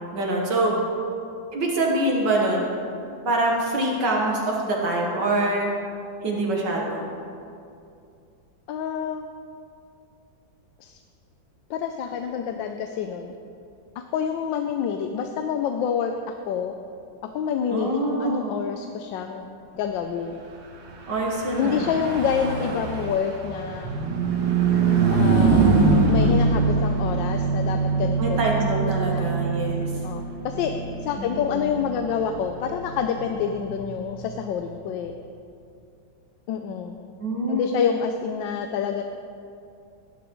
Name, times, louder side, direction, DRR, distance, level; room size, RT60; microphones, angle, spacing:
voice 1, 0.1-0.7 1.5-2.7 3.2-5.7 6.2-7.1 17.7-18.6 21.1-21.9 28.2-29.9 31.2-31.6 37.2-37.7, right 2 dB, 70° right, -2 dB, 1.9 m, -25 dB
voice 2, 8.7-9.2 10.8-11.0 11.7-13.3 14.0-16.1 16.5-16.7 17.2-19.5 19.7-20.4 21.6-23.9 25.1-28.4 29.1-29.3 30.0-30.7 31.0-35.1 36.5-37.0 37.5-39.0, left 7 dB, 80° left, 5 dB, 1.3 m, -27 dB
Car passing by / Truck, 21.1-34.8, right 4 dB, 85° right, 1.7 m, -24 dB
16.0 x 11.0 x 3.1 m, 2.5 s
omnidirectional pair, 2.0 m